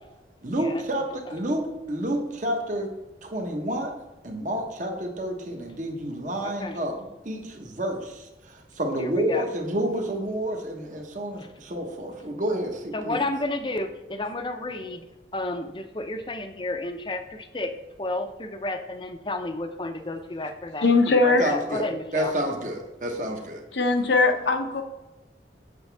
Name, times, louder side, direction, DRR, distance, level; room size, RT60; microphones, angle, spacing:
voice 1, 0.4-2.9 3.2-3.9 4.2-6.9 7.2-13.2 21.4-23.6, right 1 dB, 45° right, 2 dB, 1.2 m, -29 dB
voice 2, 6.4-6.8 9.0-9.5 12.9-15.0 15.3-17.7 18.0-22.3, left 2 dB, 25° left, 7 dB, 0.6 m, -32 dB
voice 3, 20.8-21.5 23.7-24.8, left 3 dB, 80° left, 5 dB, 0.9 m, -20 dB
8.1 x 7.0 x 3.4 m, 1.0 s
head